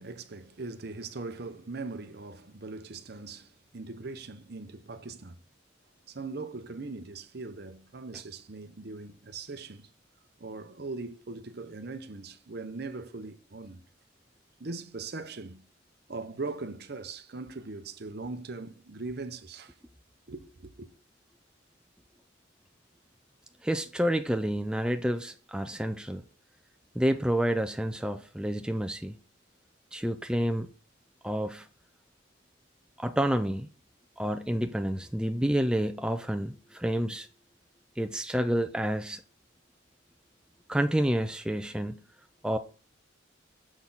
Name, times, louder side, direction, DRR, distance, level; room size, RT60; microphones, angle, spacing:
voice 1, 0.0-5.4 6.1-9.9 10.4-13.8 14.6-15.6 16.1-19.7 20.3-20.9, right 3 dB, 55° right, 0.7 m, -40 dB
voice 2, 23.6-26.2 27.0-29.2 29.9-30.7 31.2-31.7 33.0-33.7 34.2-37.3 38.0-39.2 40.7-42.0 42.4-42.6, equal, 5° right, 0.4 m, -29 dB
7.1 x 6.3 x 3.9 m
head